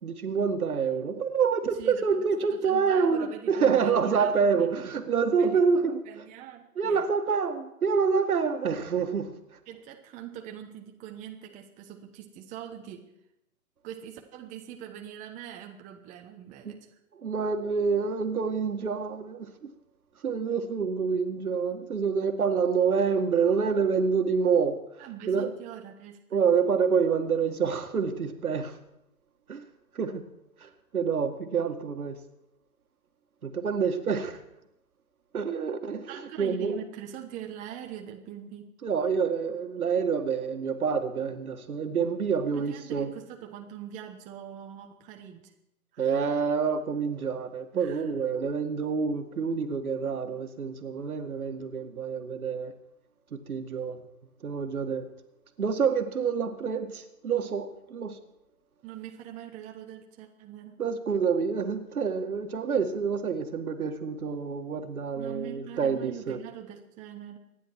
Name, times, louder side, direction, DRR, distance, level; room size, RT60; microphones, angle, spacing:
voice 1, 0.0-6.0 6.8-9.3 16.6-16.8 17.2-19.7 20.2-24.8 25.3-25.5 26.3-28.8 29.5-29.6 29.9-30.3 30.6-32.2 33.4-34.4 35.3-36.8 38.8-43.1 46.0-52.7 53.3-54.0 54.4-55.1 55.6-58.2 60.8-66.4, right 6 dB, 75° right, 7 dB, 2.0 m, -27 dB
voice 2, 1.6-4.3 4.6-4.7 5.4-5.6 6.0-7.1 9.7-13.1 13.8-16.9 25.0-26.5 36.1-38.7 42.5-45.5 45.9-46.4 47.7-48.3 58.8-60.8 65.1-67.4, right 10 dB, 15° right, 3 dB, 1.1 m, -43 dB
25.5 x 10.0 x 4.6 m, 0.83 s
hypercardioid pair, 135°, 44 cm